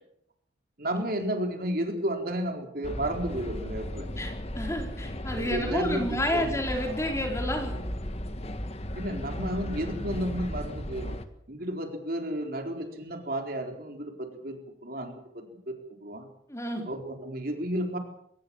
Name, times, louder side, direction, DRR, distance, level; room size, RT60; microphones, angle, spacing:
voice 1, 0.8-4.1 5.3-6.5 8.9-11.2 11.5-15.7 16.0-16.3 16.9-18.0, right 1 dB, 50° right, 4 dB, 4.1 m, -32 dB
sound 1, 2.8-11.3, left 1 dB, 35° left, 1.7 m, -35 dB
voice 2, 4.2-7.7 16.5-16.9, equal, 15° left, 3 dB, 4.2 m, -30 dB
23.5 x 18.5 x 7.2 m, 0.71 s
head